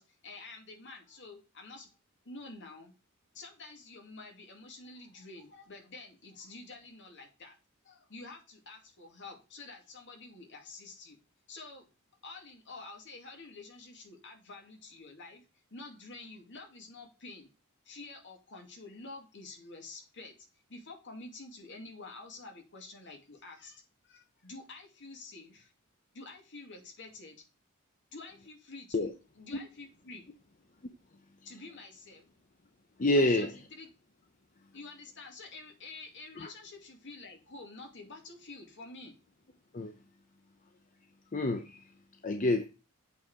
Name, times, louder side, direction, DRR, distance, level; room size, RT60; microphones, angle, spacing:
voice 1, 0.0-1.9 2.2-2.9 3.3-7.6 7.8-11.2 11.5-11.9 12.2-15.4 15.7-17.5 17.8-20.3 20.7-25.7 26.1-27.4 28.1-30.3 31.4-32.3 33.1-33.9 34.7-39.1, left 3 dB, 60° left, 2.4 m, -48 dB
voice 2, 33.0-33.5 36.4-36.5 39.7-39.9 41.3-41.8 42.2-42.7, left 1 dB, 40° left, 0.7 m, -27 dB
8.0 x 4.6 x 4.9 m
head